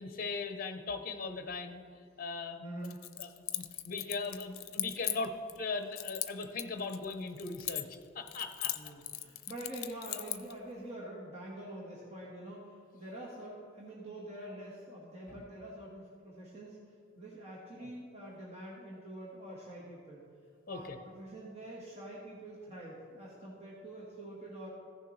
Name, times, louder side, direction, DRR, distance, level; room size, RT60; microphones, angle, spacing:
voice 1, 0.0-1.8 2.2-2.6 3.2-8.8 15.3-15.4 20.7-21.0, left 4 dB, 45° left, 7 dB, 0.8 m, -39 dB
voice 2, 2.6-3.0 8.7-16.8 17.1-20.2 20.7-24.7, right 1 dB, 30° right, -5 dB, 1.5 m, -46 dB
Keys jangling, 2.8-5.6 6.0-8.0 8.3-10.5, left 14 dB, 80° left, 0.5 m, -38 dB
15.5 x 6.6 x 3.2 m, 2.4 s
head